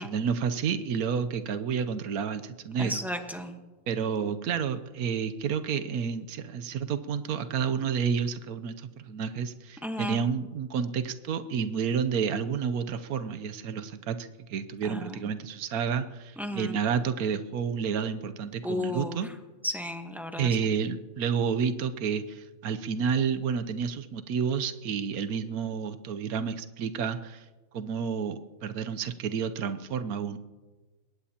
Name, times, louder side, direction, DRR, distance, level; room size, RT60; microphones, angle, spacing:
voice 1, 0.0-3.0 3.9-19.3 20.4-27.4 27.7-30.4, right 6 dB, 85° right, 10 dB, 1.3 m, -30 dB
voice 2, 2.8-3.6 9.8-10.2 14.8-15.2 16.4-16.8 18.6-19.2 19.6-20.5, left 1 dB, ahead, 5 dB, 1.0 m, -34 dB
21.5 x 18.5 x 2.9 m, 1.2 s
omnidirectional pair, 1.5 m